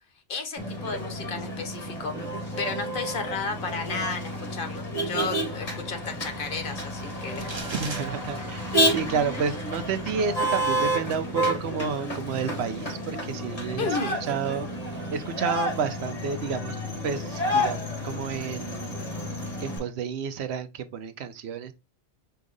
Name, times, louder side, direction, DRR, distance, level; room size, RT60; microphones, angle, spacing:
voice 1, 0.3-2.2 2.6-7.5 13.8-14.2, left 4 dB, 55° left, 1.0 m, -33 dB
Motor vehicle (road), 0.6-19.8, equal, 35° left, 2.0 m, -30 dB
sound 1, 7.4-8.0, right 2 dB, 25° right, 0.8 m, -36 dB
voice 2, 7.7-14.7 15.1-19.0 19.6-21.7, right 6 dB, 70° right, 0.9 m, -31 dB
4.8 x 2.5 x 3.8 m
omnidirectional pair, 1.2 m